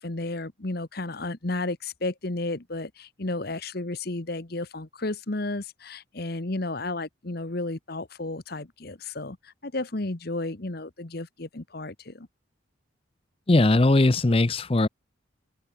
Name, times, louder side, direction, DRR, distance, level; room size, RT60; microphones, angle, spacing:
voice 1, 0.0-12.3, left 2 dB, 50° left, 1.3 m, -33 dB
voice 2, 13.5-14.9, left 2 dB, 30° left, 0.6 m, -19 dB
open air
head